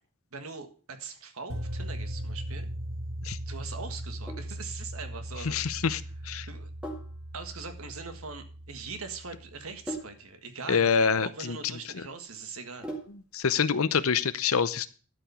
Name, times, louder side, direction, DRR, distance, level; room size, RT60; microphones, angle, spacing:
voice 1, 0.3-2.7 3.5-5.9 6.5-6.7 7.3-12.9, right 4 dB, 80° right, 7 dB, 1.6 m, -42 dB
sound 1, 1.5-9.6, right 1 dB, 60° right, 2.7 m, -38 dB
Sink (filling or washing), 4.3-13.4, right 1 dB, 5° right, 2.0 m, -45 dB
voice 2, 5.4-6.5 10.7-11.6 11.9-12.0 13.3-14.9, left 6 dB, 80° left, 15 dB, 0.7 m, -26 dB
12.5 x 5.0 x 6.9 m, 0.40 s
head